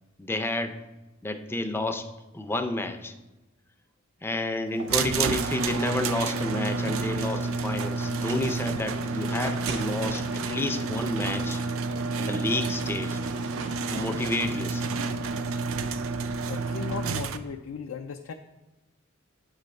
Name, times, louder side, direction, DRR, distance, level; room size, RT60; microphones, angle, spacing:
voice 1, 0.2-0.8 1.2-2.1 2.3-3.1 4.2-11.6 12.2-13.2 13.9-15.0, left 2 dB, 10° left, 7 dB, 0.4 m, -30 dB
sound 1, 4.7-17.4, right 3 dB, 60° right, 0.8 m, -45 dB
sound 2, 4.9-17.4, right 4 dB, 75° right, 0.4 m, -29 dB
voice 2, 16.5-18.3, left 6 dB, 85° left, 5 dB, 0.4 m, -36 dB
8.1 x 3.3 x 5.1 m, 1.1 s
head